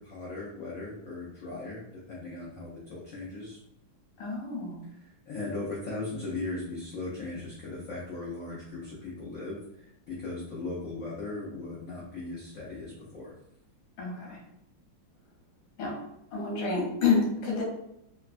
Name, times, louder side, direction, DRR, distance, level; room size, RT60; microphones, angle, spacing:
voice 1, 0.0-3.6 4.9-13.3, left 2 dB, 85° left, -6 dB, 0.7 m, -38 dB
voice 2, 4.2-4.8 14.0-14.4 15.8-16.0 16.3-17.6, left 4 dB, 60° left, -3 dB, 1.4 m, -28 dB
3.3 x 2.1 x 2.4 m, 0.82 s
omnidirectional pair, 2.3 m